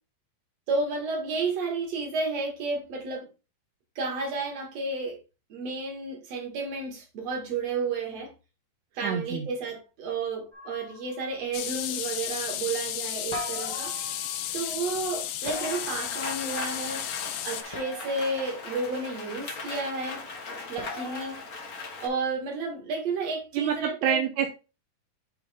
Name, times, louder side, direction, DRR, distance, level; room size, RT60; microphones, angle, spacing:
voice 1, 0.7-3.3 4.0-5.2 5.5-8.3 9.0-13.9 14.5-17.0 17.4-20.2 20.7-21.4 22.0-24.2, right 3 dB, 50° right, 2.9 m, -31 dB
voice 2, 9.0-9.5 23.5-24.5, right 8 dB, 75° right, 2.0 m, -27 dB
sound 1, 10.5-11.4 13.3-14.7 15.5-16.7 17.7-18.6 20.8-21.4, left 1 dB, 30° left, 0.5 m, -41 dB
sound 2, 11.5-17.6, left 11 dB, 90° left, 2.5 m, -33 dB
Rain, 15.4-22.1, left 4 dB, 70° left, 0.8 m, -39 dB
9.3 x 3.7 x 3.6 m
omnidirectional pair, 4.1 m